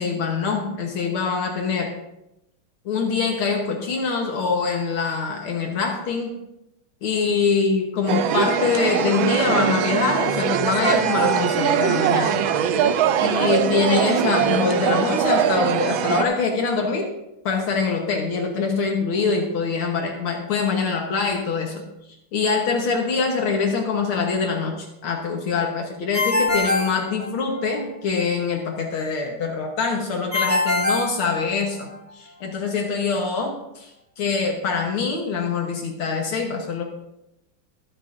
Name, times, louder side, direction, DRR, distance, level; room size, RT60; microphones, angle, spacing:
voice 1, 0.0-1.9 2.9-6.3 7.0-12.4 13.2-17.1 17.5-21.8 22.3-31.9 32.2-33.9 34.2-36.8, left 5 dB, 75° left, 1 dB, 2.1 m, -24 dB
sound 1, 8.1-16.2, right 8 dB, 75° right, 1.3 m, -21 dB
Ringtone, 26.1-27.8 30.3-31.9, left 2 dB, 5° left, 2.6 m, -23 dB
21.5 x 7.3 x 2.6 m, 0.87 s
omnidirectional pair, 2.4 m